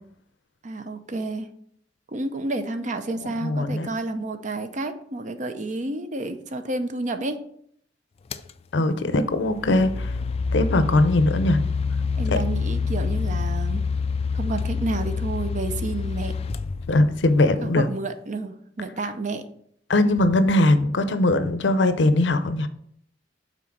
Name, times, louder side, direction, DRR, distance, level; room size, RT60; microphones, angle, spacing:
voice 1, 0.6-1.5 2.1-7.4 12.2-13.8 14.3-16.3 17.6-19.4, right 2 dB, 40° right, 9 dB, 0.6 m, -30 dB
voice 2, 3.2-3.9 8.7-10.1 10.5-11.6 12.3-12.4 16.9-17.9 19.9-22.7, left 2 dB, 75° left, 11 dB, 0.6 m, -20 dB
sound 1, 8.3-8.5 9.4-17.4, left 5 dB, 35° left, 0.3 m, -27 dB
6.0 x 4.0 x 5.9 m, 0.66 s
head